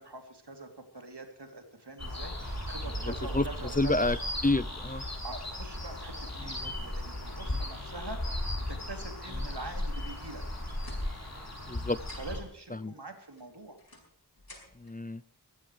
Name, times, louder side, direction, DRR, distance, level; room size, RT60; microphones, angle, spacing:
voice 1, 0.0-4.1 5.2-8.3 8.7-10.4 12.1-13.8, right 2 dB, 85° right, 4 dB, 3.2 m, -44 dB
sound 1, 2.0-12.4, left 1 dB, 40° left, 7.1 m, -36 dB
sound 2, 2.4-6.2, right 1 dB, 45° right, 6.2 m, -42 dB
voice 2, 3.1-3.4 3.8-4.2 4.4-5.0 6.5-6.7 11.7-12.0 12.8-12.9 14.7-15.2, left 2 dB, 20° left, 15 dB, 0.6 m, -29 dB
sound 3, 10.3-11.7 11.9-12.5 13.3-15.0, left 2 dB, 60° left, 7.5 m, -55 dB
22.5 x 16.0 x 3.3 m, 0.65 s
wide cardioid pair, 45°, 40 cm